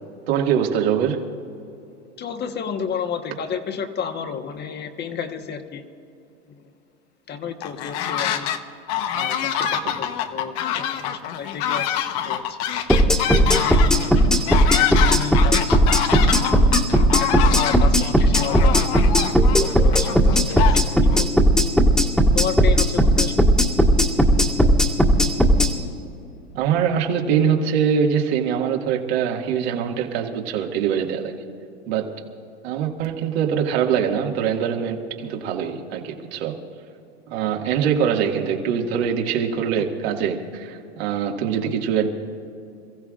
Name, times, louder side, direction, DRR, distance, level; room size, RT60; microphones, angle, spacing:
voice 1, 0.3-1.3 9.8-9.9 24.6-24.7 26.5-31.3 31.9-32.2 32.6-36.6 37.3-42.1, right 7 dB, 65° right, 1 dB, 2.2 m, -23 dB
voice 2, 2.2-5.9 6.6-6.7 7.3-8.5 9.1-12.0 12.2-12.6 13.3-14.0 14.8-15.8 17.2-18.8 19.6-20.9 21.2-21.3 22.3-23.3, left 7 dB, 30° left, 6 dB, 1.4 m, -32 dB
sound 1, 7.6-8.6 8.9-21.2, left 10 dB, 50° left, 1.2 m, -26 dB
sound 2, 12.9-25.7, equal, ahead, 1.7 m, -16 dB
28.0 x 15.5 x 2.5 m, 2.7 s
hypercardioid pair, 105°, 34 cm